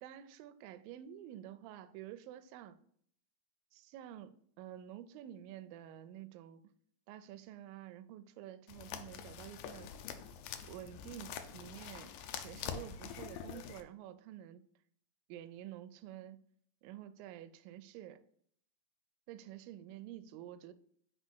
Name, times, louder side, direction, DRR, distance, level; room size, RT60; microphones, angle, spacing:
voice 1, 0.0-2.8 3.7-6.7 7.1-9.9 10.6-14.7 15.3-16.4 16.8-18.2 19.3-20.7, right 11 dB, 90° right, 2.3 m, -50 dB
sound 1, 8.7-13.8, left 8 dB, 80° left, 2.1 m, -45 dB
5.5 x 4.1 x 6.1 m
omnidirectional pair, 4.0 m